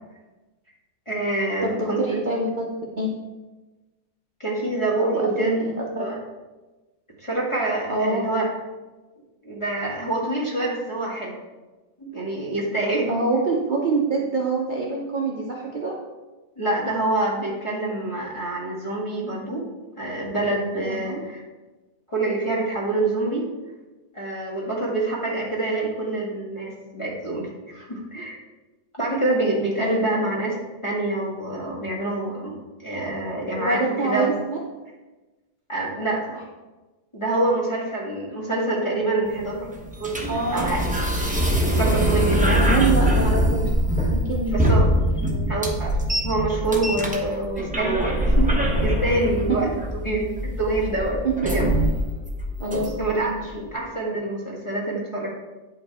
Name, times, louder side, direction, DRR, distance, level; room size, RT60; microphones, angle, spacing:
voice 1, 1.1-2.2 4.4-5.5 6.0-6.2 7.2-8.4 9.4-11.4 12.0-13.1 16.6-19.6 20.0-21.4 22.1-23.4 24.1-28.4 29.0-34.4 35.7-36.3 37.1-39.7 40.0-40.2 40.5-40.8 41.7-42.6 44.5-44.9 45.5-46.0 46.2-48.5 48.8-49.7 50.0-50.3 50.6-51.7 53.0-55.3, right 2 dB, 15° left, -4 dB, 1.9 m, -26 dB
voice 2, 2.0-2.7 3.0-3.1 5.0-6.0 7.9-8.3 13.1-16.0 21.0-21.2 29.8-29.9 33.6-34.6 37.3-37.6 40.3-40.8 42.6-43.6 44.1-45.5 49.5-49.6 52.6-53.4, right 2 dB, 35° right, -2 dB, 0.8 m, -26 dB
sound 1, 39.3-53.3, equal, 5° right, 0.6 m, -23 dB
9.4 x 5.7 x 4.3 m, 1.2 s
omnidirectional pair, 2.0 m